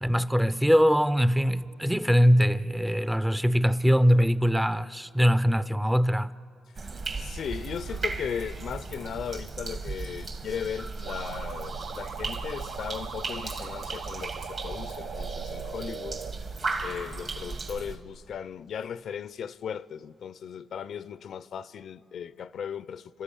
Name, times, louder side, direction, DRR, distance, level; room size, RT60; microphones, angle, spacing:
voice 1, 0.0-6.3, equal, 5° right, 0.5 m, -22 dB
sound 1, 6.7-18.0, right 4 dB, 45° right, 1.8 m, -36 dB
voice 2, 7.2-16.2 16.8-23.2, left 8 dB, 60° left, 0.5 m, -37 dB
sound 2, 11.1-16.3, right 5 dB, 85° right, 1.1 m, -40 dB
29.5 x 13.0 x 8.4 m
cardioid pair, 90°, 0 cm